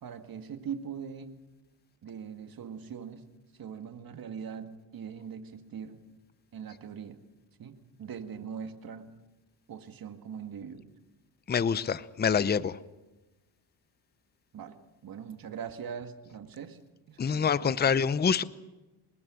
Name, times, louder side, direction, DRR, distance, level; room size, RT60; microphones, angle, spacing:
voice 1, 0.0-1.3 2.0-3.2 3.6-6.0 6.5-7.2 7.6-9.1 9.7-10.9 14.5-14.8 15.0-16.8 17.1-18.0, right 7 dB, 55° right, 2.0 m, -41 dB
voice 2, 11.5-12.8 17.2-18.4, left 6 dB, 25° left, 0.7 m, -26 dB
25.5 x 21.0 x 6.4 m
cardioid pair, 95°, 42 cm